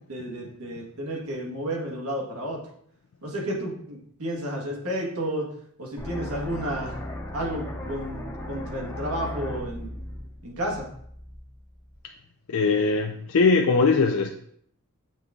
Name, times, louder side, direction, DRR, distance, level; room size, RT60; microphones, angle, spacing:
voice 1, 0.1-2.6 3.2-5.5 5.8-6.9 7.3-9.9 10.4-10.9, right 1 dB, 85° right, -1 dB, 1.6 m, -31 dB
sound 1, 6.0-11.9, left 1 dB, 15° left, 0.7 m, -37 dB
voice 2, 12.5-14.4, left 4 dB, 70° left, 3 dB, 0.4 m, -21 dB
7.3 x 3.6 x 3.7 m, 0.65 s
head